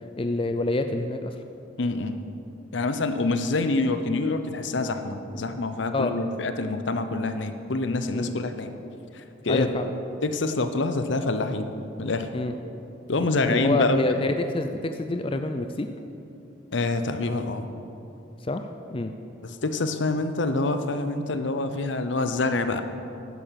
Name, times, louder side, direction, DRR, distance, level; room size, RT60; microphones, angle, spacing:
voice 1, 0.2-1.3 5.9-6.2 8.1-8.4 9.5-9.9 12.3-12.5 13.5-15.9 18.4-18.7 18.9-19.1, left 2 dB, 30° left, 7 dB, 0.4 m, -27 dB
voice 2, 1.8-2.1 2.7-8.7 9.1-9.7 10.2-11.7 12.0-12.3 13.1-14.2 16.7-17.7 19.4-22.8, left 3 dB, 75° left, 9 dB, 0.8 m, -26 dB
11.5 x 10.0 x 5.9 m, 2.8 s
head